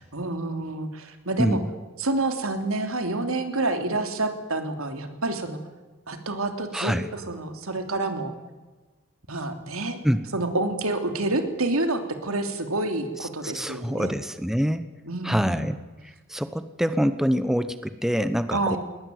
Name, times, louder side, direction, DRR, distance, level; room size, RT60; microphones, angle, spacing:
voice 1, 0.1-1.6 2.0-5.6 6.1-8.3 9.3-10.0 10.3-14.1 15.1-15.7 18.5-18.8, right 2 dB, 85° right, 7 dB, 3.2 m, -28 dB
voice 2, 6.7-7.1 10.0-10.3 13.2-14.9 15.2-15.8 16.3-18.8, equal, ahead, 11 dB, 0.9 m, -25 dB
20.5 x 20.0 x 9.5 m, 1.2 s
head